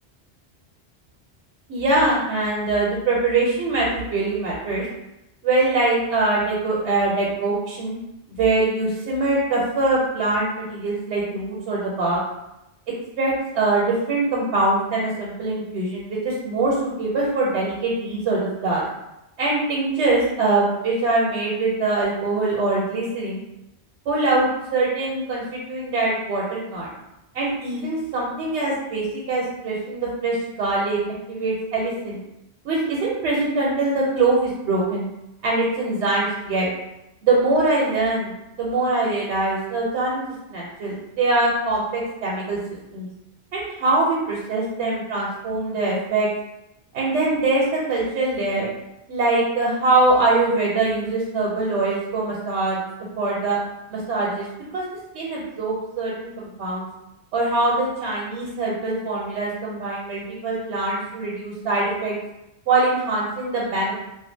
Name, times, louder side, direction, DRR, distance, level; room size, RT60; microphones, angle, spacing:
voice 1, 1.7-4.8 5.4-8.0 8.3-12.2 13.2-18.8 19.4-23.4 24.1-26.9 27.3-31.0 31.3-32.2 32.6-35.1 35.4-36.7 37.2-40.2 40.5-42.6 42.9-43.1 43.5-46.3 46.9-48.7 49.1-52.8 53.2-53.6 53.9-54.5 54.7-54.8 55.1-56.9 57.3-62.1 62.7-63.9, right 2 dB, 85° right, -4 dB, 0.9 m, -23 dB
2.4 x 2.3 x 2.6 m, 0.90 s
omnidirectional pair, 1.1 m